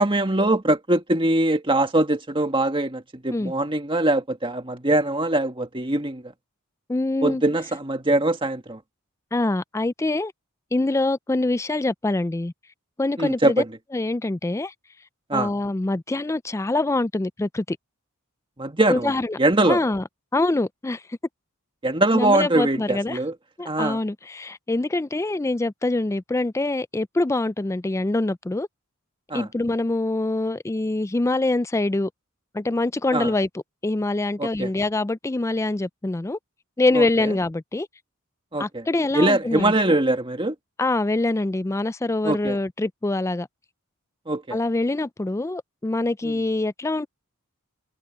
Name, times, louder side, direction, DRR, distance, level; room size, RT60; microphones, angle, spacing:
voice 1, 0.0-6.3 7.2-8.8 13.2-13.8 15.3-15.5 18.6-19.8 21.8-23.3 23.7-24.0 29.3-29.5 33.1-33.3 34.4-34.7 36.9-37.3 38.5-38.9 39.1-40.6 42.2-42.6 44.3-44.6 46.2-46.3, right 2 dB, 25° right, 1.8 m, -22 dB
voice 2, 6.9-7.4 9.3-10.3 10.7-12.5 13.0-13.6 13.9-14.7 15.3-17.8 18.9-19.4 19.7-20.0 20.3-21.2 22.1-23.2 23.6-28.7 29.3-32.1 32.5-33.5 33.8-36.4 36.8-37.9 38.6-40.0 40.8-43.5 44.5-47.1, left 2 dB, 15° left, 0.4 m, -24 dB
head